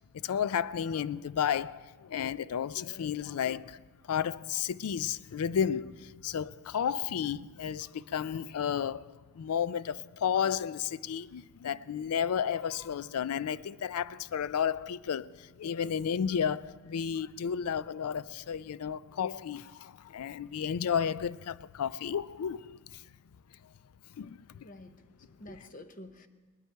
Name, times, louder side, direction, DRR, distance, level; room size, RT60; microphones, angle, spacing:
voice 1, 0.1-3.8 4.1-23.0 24.2-24.7, left 8 dB, 85° left, 0.4 m, -32 dB
voice 2, 24.6-26.3, left 1 dB, 35° left, 0.7 m, -49 dB
19.5 x 12.0 x 4.5 m
head